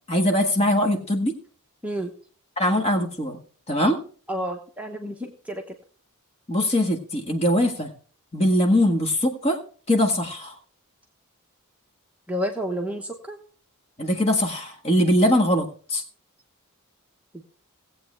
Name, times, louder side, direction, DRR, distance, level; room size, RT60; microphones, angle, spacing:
voice 1, 0.1-1.4 2.6-3.4 3.7-4.0 6.5-7.9 8.3-9.6 9.9-10.5 14.0-16.0, left 1 dB, 30° left, 3 dB, 1.6 m, -21 dB
voice 2, 1.8-2.1 4.3-5.8 12.3-13.4 17.3-17.4, equal, 5° right, 1 dB, 1.0 m, -30 dB
18.0 x 8.0 x 3.3 m, 0.42 s
head